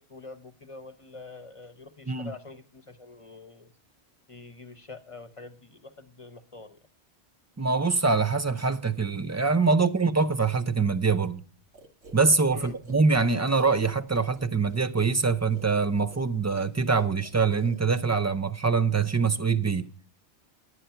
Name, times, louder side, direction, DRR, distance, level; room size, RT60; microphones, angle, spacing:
voice 1, 0.0-3.7 4.3-6.8 12.5-12.8, left 3 dB, 30° left, 0.9 m, -45 dB
voice 2, 7.6-11.4 12.1-19.9, right 4 dB, 25° right, 0.3 m, -24 dB
sound 1, 11.7-18.2, right 1 dB, 80° right, 2.1 m, -50 dB
11.5 x 9.1 x 5.6 m
omnidirectional pair, 1.1 m